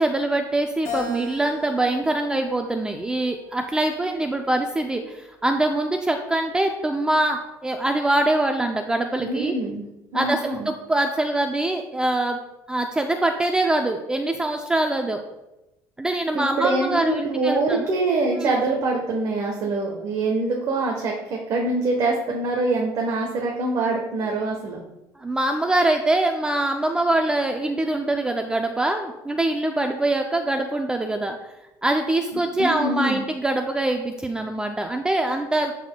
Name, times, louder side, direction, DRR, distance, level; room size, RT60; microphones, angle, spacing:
voice 1, 0.0-9.5 10.1-12.4 12.7-15.2 16.0-17.9 18.4-18.6 25.2-31.4 31.8-35.7, right 2 dB, 10° right, 4 dB, 0.4 m, -23 dB
Keyboard (musical), 0.9-3.3 3.9-5.2, left 4 dB, 35° left, 2.3 m, -37 dB
voice 2, 9.2-9.8 10.1-10.7 16.3-24.8 32.6-33.3, right 2 dB, 55° right, 0 dB, 1.0 m, -24 dB
12.0 x 4.2 x 2.2 m, 0.96 s
cardioid pair, 135°, 8 cm